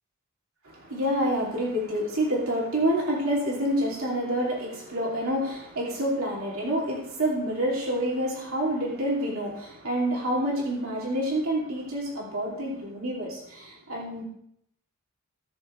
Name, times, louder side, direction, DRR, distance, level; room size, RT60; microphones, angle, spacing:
voice 1, 0.6-14.2, equal, 70° right, -4 dB, 2.8 m, -28 dB
18.0 x 6.7 x 3.3 m, 0.74 s
head